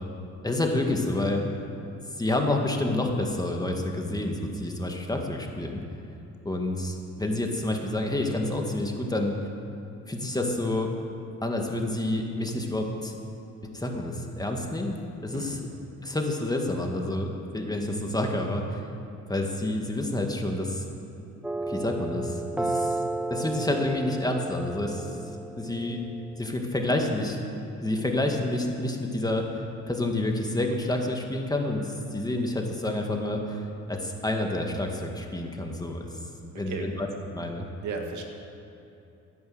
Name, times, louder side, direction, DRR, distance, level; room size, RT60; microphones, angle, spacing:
voice 1, 0.4-1.4 2.2-5.8 6.4-9.4 10.1-10.9 11.4-13.1 13.7-14.9 15.2-15.6 16.0-18.8 19.3-20.8 21.6-23.0 23.3-25.1 25.6-26.0 26.4-27.4 27.8-36.1 36.6-37.1 37.3-37.7, left 1 dB, 10° left, 2 dB, 2.0 m, -28 dB
sound 1, 21.4-26.5, right 2 dB, 5° right, 0.5 m, -33 dB
voice 2, 36.4-36.9 37.8-38.2, right 4 dB, 75° right, 3 dB, 2.1 m, -35 dB
14.0 x 10.5 x 8.0 m, 2.8 s
cardioid pair, 90°, 30 cm